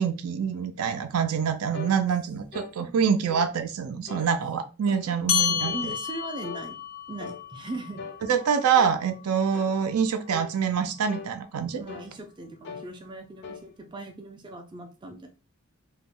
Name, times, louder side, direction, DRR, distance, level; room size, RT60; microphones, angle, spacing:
voice 1, 0.0-5.7 8.3-11.8, right 7 dB, 85° right, 8 dB, 0.4 m, -25 dB
sound 1, 1.7-2.0 2.5-2.8 3.3-3.5 4.1-4.3 4.9-5.1 5.6-5.9 6.4-6.7 7.2-7.4 8.0-8.2 8.7-9.0 9.5-9.8 10.3-10.6 11.1-11.3 11.9-12.1 12.6-12.9 13.4-13.6, left 5 dB, 50° left, 0.4 m, -40 dB
voice 2, 5.1-6.8 7.1-8.0 11.8-15.3, right 2 dB, 20° right, 4 dB, 0.3 m, -39 dB
sound 2, 5.3-10.1, left 8 dB, 85° left, 0.7 m, -32 dB
2.3 x 2.0 x 3.5 m, 0.32 s
head